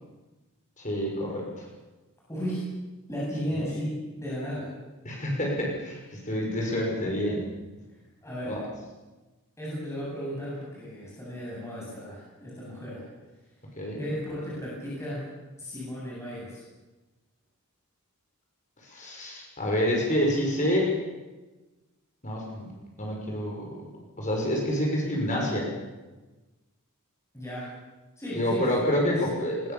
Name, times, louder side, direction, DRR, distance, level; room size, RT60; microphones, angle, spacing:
voice 1, 0.8-1.6 5.0-7.4 8.5-8.6 13.8-14.0 18.8-20.9 22.2-22.7 23.0-23.8 24.2-25.7 28.3-29.7, equal, 35° left, -1 dB, 6.1 m, -28 dB
voice 2, 2.3-2.7 3.1-4.7 8.2-8.6 9.6-13.0 14.0-15.3 15.6-16.6 27.3-27.7 28.2-28.7 29.0-29.4, equal, 15° left, -6 dB, 7.5 m, -35 dB
22.0 x 21.0 x 7.1 m, 1.1 s
head